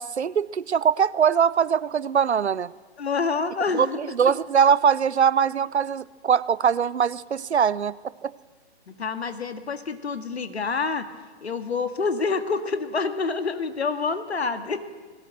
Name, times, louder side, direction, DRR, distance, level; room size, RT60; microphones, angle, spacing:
voice 1, 0.0-2.7 3.8-8.0 8.2-8.3, right 7 dB, 75° right, 20 dB, 0.7 m, -22 dB
voice 2, 3.0-4.0 8.9-11.1 11.4-14.9, left 4 dB, 70° left, 9 dB, 1.9 m, -27 dB
20.0 x 17.5 x 7.6 m, 1.4 s
figure-of-eight pair, 125°, 33 cm